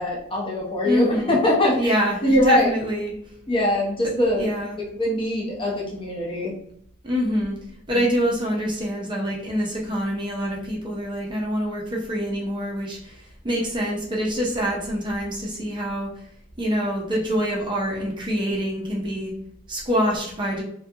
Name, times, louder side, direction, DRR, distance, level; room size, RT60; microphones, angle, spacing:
voice 1, 0.0-1.9 2.2-2.7 3.5-4.5 4.9-6.5 7.9-8.0, left 1 dB, 25° left, -3 dB, 0.6 m, -22 dB
voice 2, 0.8-1.4 1.8-3.1 4.4-4.8 7.0-7.5 7.9-16.1 16.6-19.3 19.7-20.6, equal, 25° right, -2 dB, 0.5 m, -25 dB
2.4 x 2.2 x 2.6 m, 0.66 s
head